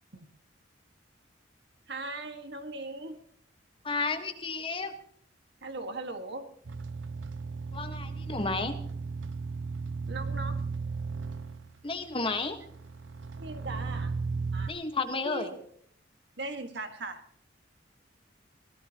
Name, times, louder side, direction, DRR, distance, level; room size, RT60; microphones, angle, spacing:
voice 1, 1.9-3.2 5.6-6.5 10.1-10.6 13.4-14.1 14.5-14.7 15.2-15.6 16.4-17.2, right 2 dB, 65° right, 7 dB, 1.8 m, -39 dB
voice 2, 3.8-4.9 7.7-8.7 11.8-12.6 14.7-15.5, left 3 dB, 30° left, 7 dB, 1.4 m, -32 dB
sound 1, 6.6-14.7, right 4 dB, 85° right, 0.8 m, -36 dB
23.0 x 17.5 x 3.0 m, 0.65 s
head